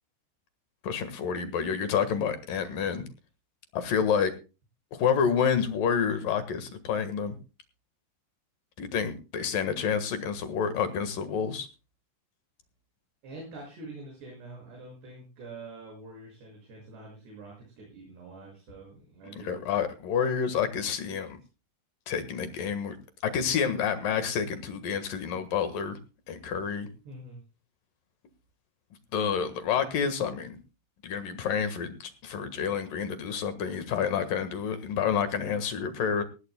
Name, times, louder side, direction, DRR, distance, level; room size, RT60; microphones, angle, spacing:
voice 1, 0.8-3.0 3.7-4.3 4.9-7.3 8.8-11.7 19.4-21.4 22.1-23.0 23.2-26.0 26.3-26.9 29.1-30.6 31.0-36.2, left 7 dB, 60° left, 10 dB, 2.6 m, -29 dB
voice 2, 13.2-19.6 27.1-27.4, right 2 dB, 60° right, -1 dB, 8.4 m, -45 dB
19.0 x 16.5 x 2.2 m, 0.31 s
omnidirectional pair, 5.6 m